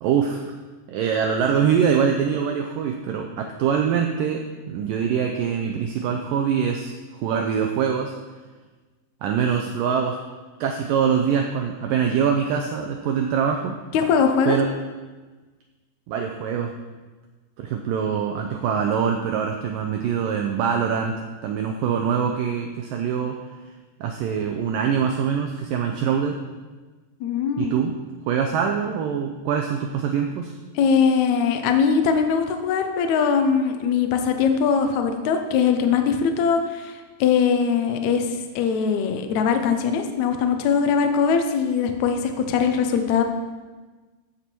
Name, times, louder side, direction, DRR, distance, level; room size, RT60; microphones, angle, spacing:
voice 1, 0.0-0.4 0.9-6.9 7.2-8.1 9.2-10.2 10.6-13.7 14.5-14.7 16.1-16.7 17.6-21.2 21.4-23.4 24.0-26.4 27.6-27.9 28.3-30.6, right 7 dB, 80° right, 4 dB, 2.0 m, -23 dB
voice 2, 13.9-14.6 27.2-27.7 30.7-36.9 37.2-43.2, left 6 dB, 80° left, 5 dB, 1.6 m, -21 dB
14.0 x 7.1 x 4.6 m, 1.3 s
omnidirectional pair, 4.7 m